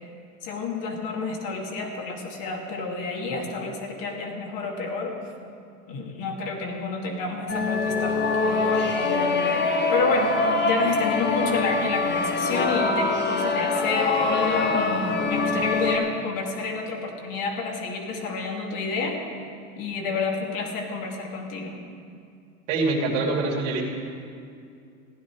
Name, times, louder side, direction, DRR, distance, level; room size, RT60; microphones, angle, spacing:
voice 1, 0.4-5.1 5.9-9.0 9.3-9.6 9.9-19.2 19.8-21.8, left 4 dB, 55° left, 0 dB, 2.4 m, -30 dB
sound 1, 7.5-16.0, left 3 dB, 25° left, 1.4 m, -24 dB
voice 2, 22.7-23.8, right 3 dB, 70° right, -1 dB, 2.7 m, -24 dB
15.5 x 10.5 x 4.7 m, 2.4 s
hypercardioid pair, 95°, 40 cm